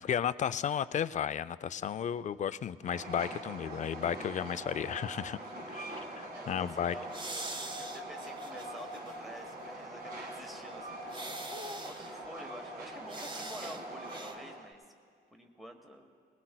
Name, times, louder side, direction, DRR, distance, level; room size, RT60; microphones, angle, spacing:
voice 1, 0.0-5.4 5.7-6.9, left 8 dB, 40° left, 15 dB, 0.4 m, -33 dB
Train, 2.8-14.7, right 1 dB, 50° right, 1.9 m, -43 dB
voice 2, 6.3-11.3 11.8-14.8 15.3-16.1, equal, ahead, 3 dB, 1.3 m, -49 dB
sound 1, 7.1-9.1 9.5-9.6 11.1-12.1 13.1-13.8 14.1-14.3, right 2 dB, 25° right, 1.1 m, -43 dB
20.5 x 19.0 x 2.2 m, 2.3 s
cardioid pair, 90°, 20 cm